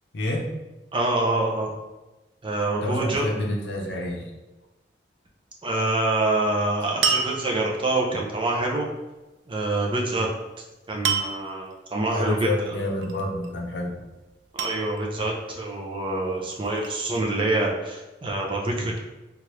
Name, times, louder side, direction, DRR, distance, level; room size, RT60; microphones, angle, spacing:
voice 1, 0.1-0.5 2.8-4.3 12.1-13.9, left 1 dB, 70° left, 0 dB, 0.6 m, -28 dB
voice 2, 0.9-1.7 2.4-3.3 5.6-8.9 9.5-10.3 10.9-12.8 14.5-19.0, right 2 dB, 30° right, -1 dB, 0.5 m, -26 dB
sound 1, 7.0-7.9 11.0-11.7 13.0-13.5 14.6-15.3 16.3-17.2, right 6 dB, 90° right, 0.4 m, -28 dB
3.2 x 2.5 x 3.0 m, 1.1 s
head